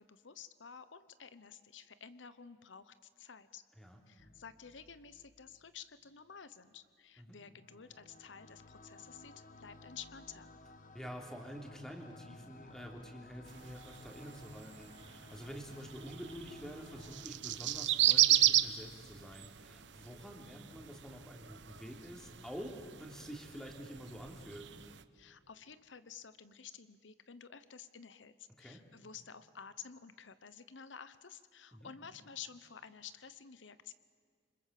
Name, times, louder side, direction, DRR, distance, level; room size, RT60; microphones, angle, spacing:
voice 1, 0.0-3.6 4.1-10.5 25.1-33.9, left 7 dB, 85° left, 13 dB, 1.0 m, -52 dB
sound 1, 4.2-6.3 7.3-17.2, left 2 dB, 45° left, 1.2 m, -58 dB
voice 2, 10.9-24.7 28.6-28.8 31.7-31.9, equal, 5° left, 2 dB, 3.4 m, -48 dB
sound 2, 13.5-25.0, right 13 dB, 70° right, 1.0 m, -35 dB
28.0 x 25.5 x 7.6 m, 2.1 s
head